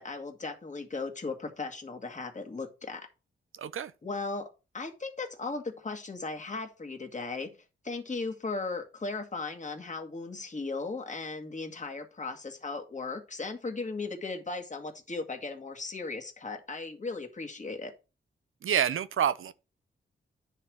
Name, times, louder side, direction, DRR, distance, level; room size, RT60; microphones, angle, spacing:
voice 1, 0.0-3.1 4.0-4.5 4.7-7.5 7.8-17.9, left 3 dB, 35° left, 1.7 m, -37 dB
voice 2, 3.5-3.9 18.6-19.5, right 8 dB, 75° right, 0.6 m, -28 dB
9.8 x 3.4 x 6.1 m
cardioid pair, 80°, 21 cm